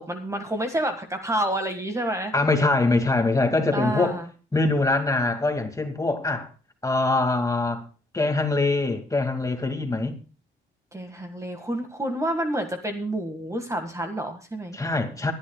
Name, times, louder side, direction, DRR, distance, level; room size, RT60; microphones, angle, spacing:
voice 1, 0.0-2.3 3.7-4.3 10.9-14.8, right 1 dB, 15° right, 1.8 m, -29 dB
voice 2, 2.3-4.2 4.5-6.5 6.8-7.8 8.1-10.2 14.7-15.3, left 3 dB, 15° left, 2.2 m, -23 dB
23.0 x 11.0 x 2.3 m
cardioid pair, 90°, 20 cm